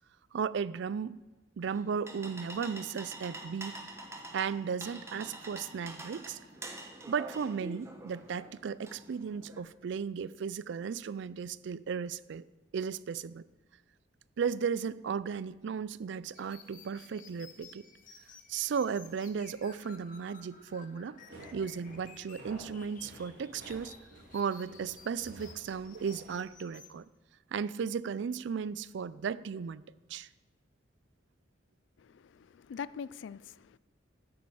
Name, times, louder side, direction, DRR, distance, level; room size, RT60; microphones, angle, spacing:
voice 1, 0.3-1.2 1.6-3.8 4.3-6.4 7.1-12.4 12.7-13.4 14.4-17.8 18.5-21.2 21.5-23.9 24.3-27.0 27.5-29.8 30.1-30.3, right 6 dB, 65° right, 0.4 m, -35 dB
sound 1, 1.6-9.6, right 1 dB, 15° right, 1.0 m, -46 dB
sound 2, 16.3-26.9, left 5 dB, 45° left, 1.2 m, -55 dB
sound 3, 21.2-26.4, right 1 dB, 85° right, 3.4 m, -52 dB
voice 2, 32.0-33.8, left 6 dB, 70° left, 0.3 m, -43 dB
13.0 x 9.3 x 4.8 m
head